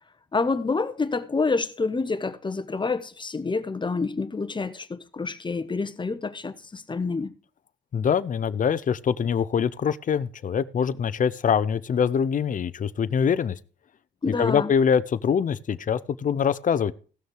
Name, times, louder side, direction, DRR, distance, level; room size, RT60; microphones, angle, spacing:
voice 1, 0.3-7.3 14.2-14.7, left 4 dB, 25° left, 1.1 m, -28 dB
voice 2, 7.9-13.6 14.4-16.9, left 7 dB, 40° left, 0.7 m, -24 dB
16.0 x 6.4 x 4.7 m
cardioid pair, 90°, 20 cm